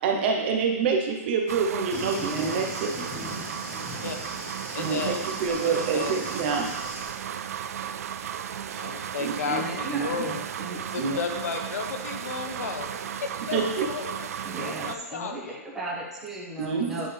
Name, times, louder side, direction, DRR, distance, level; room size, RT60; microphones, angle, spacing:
voice 1, 0.0-2.9 4.8-5.1 5.4-6.7 8.7-8.9 9.2-9.3 9.9-10.4 11.0-11.2 13.5-13.9 16.6-17.0, right 5 dB, 45° right, 2 dB, 1.0 m, -27 dB
sound 1, 1.5-15.0, right 9 dB, 70° right, 0.4 m, -35 dB
Thunder, 1.9-7.1, left 1 dB, 20° left, 1.6 m, -39 dB
voice 2, 2.2-2.8 9.4-10.1 10.6-10.8 14.4-17.1, right 1 dB, 5° right, -6 dB, 1.3 m, -35 dB
voice 3, 4.7-6.3 8.8-10.4 10.9-13.6 13.9-15.6, left 5 dB, 75° left, 5 dB, 1.0 m, -34 dB
9.6 x 4.1 x 3.4 m, 1.0 s
hypercardioid pair, 160°, 8 cm